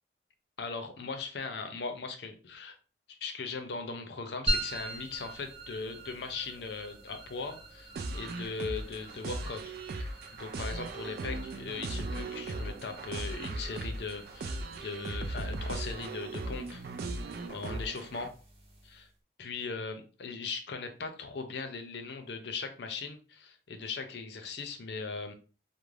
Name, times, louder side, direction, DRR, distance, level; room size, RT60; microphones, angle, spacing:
voice 1, 0.6-2.8 3.1-16.8 17.5-18.3 18.8-19.1 19.4-25.3, left 4 dB, 65° left, 6 dB, 0.5 m, -39 dB
sound 1, 4.5-19.1, right 1 dB, 30° right, 0.7 m, -42 dB
strong rock, 8.0-18.3, right 2 dB, 55° right, 0.3 m, -38 dB
2.4 x 2.0 x 3.2 m, 0.37 s
head